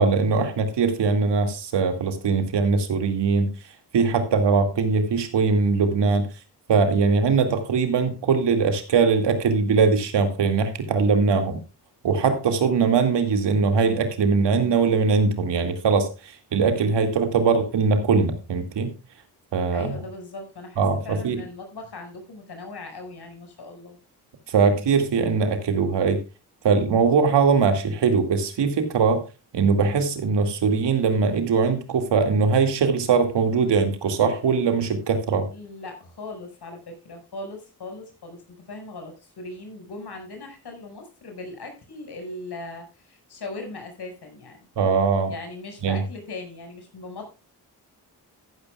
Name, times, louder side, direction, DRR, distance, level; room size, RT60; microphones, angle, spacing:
voice 1, 0.0-3.5 3.9-6.3 6.7-11.6 12.0-19.0 19.5-19.9 20.8-21.4 24.5-26.2 26.6-29.2 29.5-35.5 44.8-45.3 45.8-46.0, right 5 dB, 80° right, 7 dB, 2.1 m, -21 dB
voice 2, 19.7-24.0 35.5-44.7 45.3-47.3, left 2 dB, 65° left, 4 dB, 5.4 m, -39 dB
14.0 x 12.0 x 2.3 m, 0.29 s
cardioid pair, 55°, 41 cm